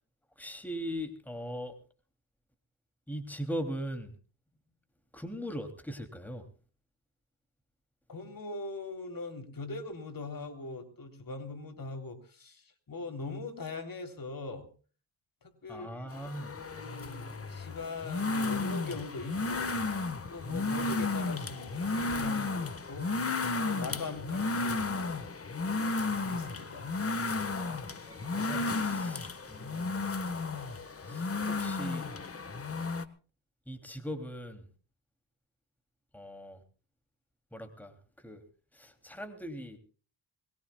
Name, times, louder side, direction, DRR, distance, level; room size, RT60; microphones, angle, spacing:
voice 1, 0.4-1.7 3.1-4.1 5.1-6.4 15.7-16.6 20.5-20.9 27.5-30.1 31.0-32.1 33.7-34.6 36.1-36.6 37.5-37.9 38.2-38.4 38.7-39.8, equal, 5° left, 6 dB, 2.9 m, -40 dB
voice 2, 8.1-14.7 15.6-19.7 20.3-23.1 23.6-25.2 26.1-26.9, left 3 dB, 45° left, 6 dB, 3.5 m, -41 dB
sound 1, 16.1-33.0, left 3 dB, 30° left, 1.5 m, -33 dB
22.0 x 21.5 x 2.3 m, 0.39 s
cardioid pair, 100°, 48 cm